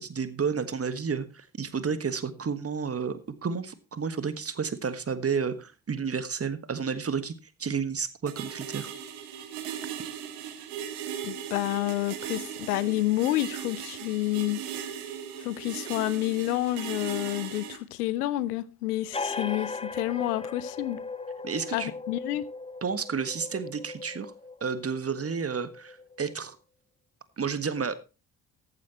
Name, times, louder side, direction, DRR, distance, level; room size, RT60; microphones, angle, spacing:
voice 1, 0.0-8.9 21.4-21.9 22.8-24.3 24.6-26.6 27.4-27.9, right 6 dB, 30° right, 1.5 m, -31 dB
sound 1, 8.3-17.8, right 9 dB, 70° right, 1.7 m, -38 dB
voice 2, 11.2-14.6 15.4-21.0 21.7-22.4, left 16 dB, 80° left, 0.7 m, -29 dB
sound 2, 19.1-26.3, left 3 dB, 15° left, 0.9 m, -38 dB
14.5 x 12.0 x 3.0 m
figure-of-eight pair, 40°, 45 cm